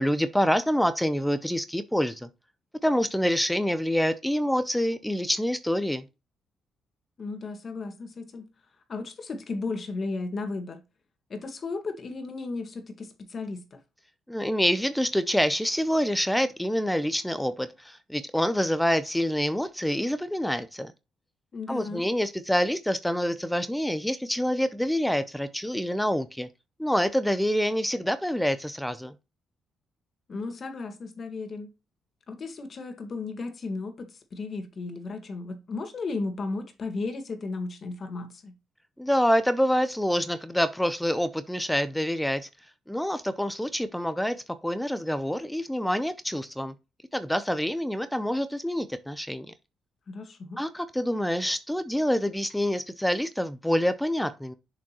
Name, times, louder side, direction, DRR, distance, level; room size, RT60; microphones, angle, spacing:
voice 1, 0.0-2.3 2.8-6.0 14.3-20.9 21.7-26.5 26.8-29.1 39.0-42.5 42.9-44.4 44.6-46.7 47.1-49.5 50.6-54.5, equal, 5° left, 0.6 m, -26 dB
voice 2, 7.2-8.5 8.9-10.8 11.3-13.8 21.5-22.1 30.3-31.7 32.3-38.5 50.1-50.6, left 3 dB, 45° left, 1.7 m, -35 dB
7.2 x 5.1 x 2.9 m
cardioid pair, 90°, 0 cm